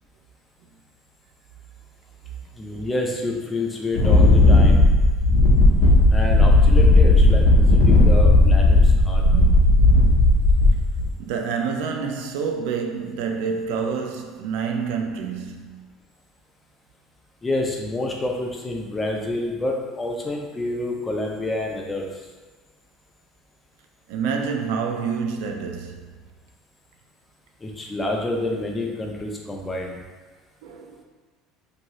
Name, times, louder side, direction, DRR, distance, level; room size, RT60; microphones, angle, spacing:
voice 1, 2.6-4.8 6.1-9.2 17.4-22.1 27.6-30.0, left 2 dB, 10° left, 0.3 m, -28 dB
Wind, 3.9-11.1, left 2 dB, 70° left, 0.5 m, -15 dB
voice 2, 11.2-15.9 24.1-26.1 30.6-31.0, right 5 dB, 65° right, 0.3 m, -28 dB
2.6 x 2.5 x 3.0 m
cardioid pair, 170°, 0 cm